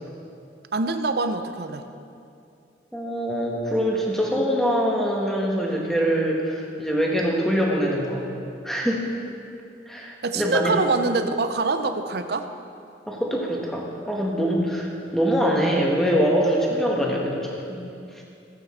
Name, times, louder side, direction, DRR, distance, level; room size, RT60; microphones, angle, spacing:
voice 1, 0.7-1.8 10.2-12.5, right 3 dB, 60° right, 9 dB, 0.6 m, -24 dB
voice 2, 2.9-8.3 8.6-9.0 9.9-10.8 13.1-17.9, equal, ahead, -2 dB, 1.3 m, -24 dB
15.0 x 8.3 x 4.3 m, 2.6 s
head